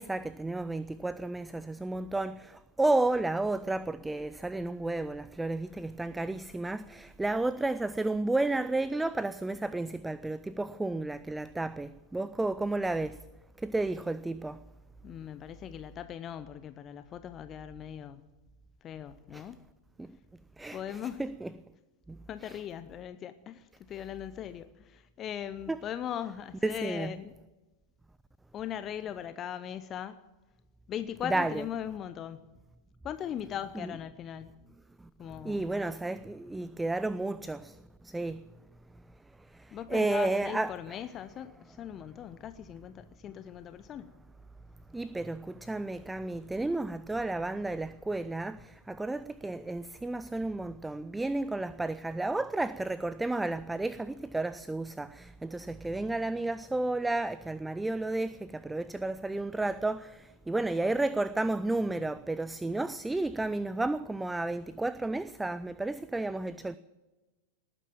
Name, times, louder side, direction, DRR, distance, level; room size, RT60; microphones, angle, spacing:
voice 1, 0.0-13.2 13.6-14.6 19.3-19.5 20.0-20.2 20.6-21.5 22.1-22.6 25.7-25.8 26.6-27.1 31.2-31.6 33.8-33.9 35.0-38.4 39.4-41.0 44.9-66.8, right 2 dB, 5° right, 0.4 m, -32 dB
voice 2, 15.0-18.2 18.8-19.6 20.7-21.2 22.3-27.3 28.5-30.2 30.9-32.4 33.0-34.5 35.2-35.6 39.7-44.1, left 9 dB, 30° left, 0.7 m, -39 dB
19.0 x 9.2 x 7.5 m
figure-of-eight pair, 90°, 0 cm